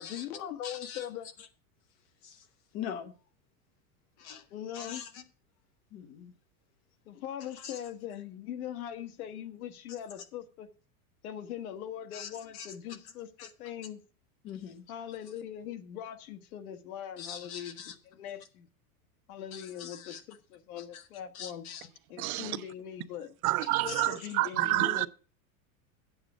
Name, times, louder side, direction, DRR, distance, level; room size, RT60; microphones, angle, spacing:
voice 1, 0.0-1.3 4.5-5.0 7.1-10.7 11.2-13.3 13.6-14.0 14.9-17.8 18.2-18.7 19.3-21.6 22.1-23.3 23.8-25.1, left 10 dB, 80° left, 1.4 m, -41 dB
voice 2, 0.6-1.1 1.4-1.5 2.2-3.1 4.2-5.2 5.9-6.4 7.4-7.9 9.9-10.3 12.1-13.0 13.4-13.5 14.4-15.2 17.2-18.0 19.5-20.2 20.8-21.1 21.3-21.9 23.9-24.3, left 8 dB, 30° left, 0.9 m, -44 dB
voice 3, 22.2-22.6 23.4-25.1, right 18 dB, 75° right, 0.7 m, -28 dB
8.9 x 7.9 x 4.9 m
supercardioid pair, 175°, 43 cm